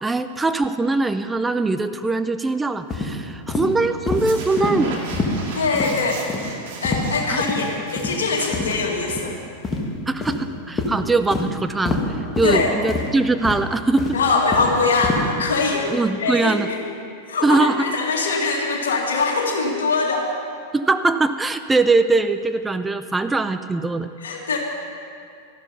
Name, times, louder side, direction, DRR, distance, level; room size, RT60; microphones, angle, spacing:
voice 1, 0.0-4.9 7.3-7.4 10.1-14.2 15.9-16.7 17.4-17.9 20.7-24.1, right 3 dB, 10° right, 10 dB, 0.5 m, -21 dB
sound 1, 2.9-3.1 3.5-3.7 4.1-4.2 4.6-4.7 5.1-5.3 5.7-5.9 6.3-6.5 6.8-7.1 7.4-7.6 8.0-8.1 8.5-8.7 9.1-9.2 9.6-9.8 10.2-10.4 10.8-10.9 11.3-11.5 11.8-12.0 12.4-12.5 12.9-13.1 13.4-13.7 14.0-14.7 15.0-15.2, left 3 dB, 20° left, 1.8 m, -25 dB
sound 2, 4.0-9.4, right 3 dB, 55° right, 2.3 m, -35 dB
voice 2, 5.6-6.2 6.8-9.4 12.4-12.7 14.1-15.9 16.2-16.8 17.3-20.3 24.2-24.6, left 4 dB, 70° left, 1 dB, 2.0 m, -22 dB
13.5 x 11.5 x 5.5 m, 2.4 s
figure-of-eight pair, 90°, 0 cm